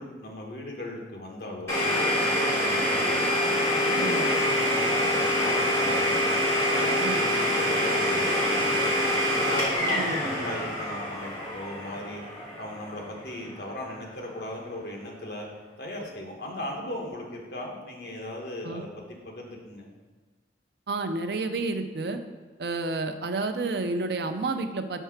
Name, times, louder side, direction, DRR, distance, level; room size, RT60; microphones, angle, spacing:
voice 1, 0.0-3.2 3.8-6.2 6.7-9.1 9.5-12.2 12.6-15.5 15.8-19.9, left 1 dB, 65° left, -1 dB, 1.3 m, -37 dB
Domestic sounds home sounds, 1.7-13.3, equal, 15° left, 1.9 m, -25 dB
voice 2, 20.9-22.2 22.6-25.0, right 3 dB, 70° right, 7 dB, 0.5 m, -30 dB
4.7 x 4.5 x 5.8 m, 1.4 s
head